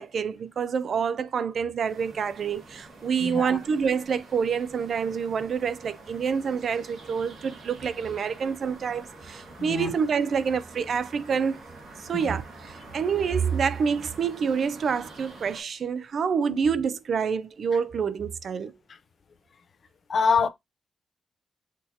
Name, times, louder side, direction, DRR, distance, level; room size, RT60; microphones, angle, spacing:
voice 1, 0.0-11.6 12.1-18.7, right 6 dB, 55° right, 0.3 m, -27 dB
sound 1, 1.9-15.6, right 2 dB, 75° right, 1.6 m, -47 dB
voice 2, 3.2-3.6 9.6-9.9 12.1-12.2 16.5-16.6 20.1-20.5, left 5 dB, 45° left, 0.4 m, -25 dB
5.8 x 2.7 x 2.7 m
wide cardioid pair, 150°, 0 cm